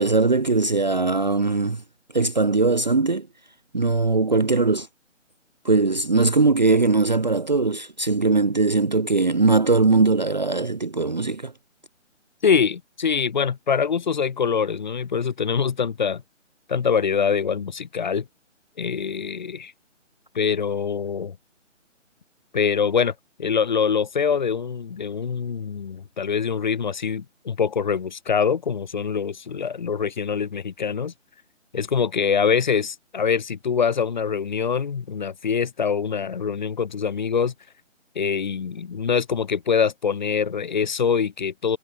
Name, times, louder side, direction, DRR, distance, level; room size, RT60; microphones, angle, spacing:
voice 1, 0.0-1.8 2.1-3.3 3.7-4.9 5.6-11.5, right 3 dB, 35° right, 0.7 m, -20 dB
voice 2, 12.4-16.2 16.7-18.3 18.8-19.7 20.3-21.4 22.5-23.1 23.4-31.1 31.7-37.5 38.1-41.8, left 6 dB, 35° left, 6.1 m, -24 dB
hypercardioid pair, 175°, 38 cm